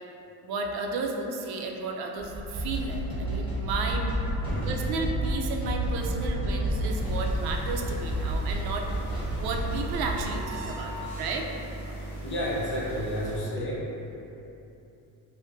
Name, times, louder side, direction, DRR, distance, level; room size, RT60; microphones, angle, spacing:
voice 1, 0.4-4.1 4.6-11.5, right 3 dB, 80° right, 1 dB, 0.5 m, -33 dB
sound 1, 2.2-10.4, equal, 15° right, 1.2 m, -30 dB
sound 2, 5.8-11.7, equal, 40° right, 1.0 m, -47 dB
sound 3, 7.0-13.4, right 1 dB, 15° left, 1.4 m, -39 dB
voice 2, 10.8-11.1 11.9-13.8, equal, 30° left, -7 dB, 0.9 m, -32 dB
4.9 x 2.1 x 2.6 m, 2.9 s
cardioid pair, 135°, 37 cm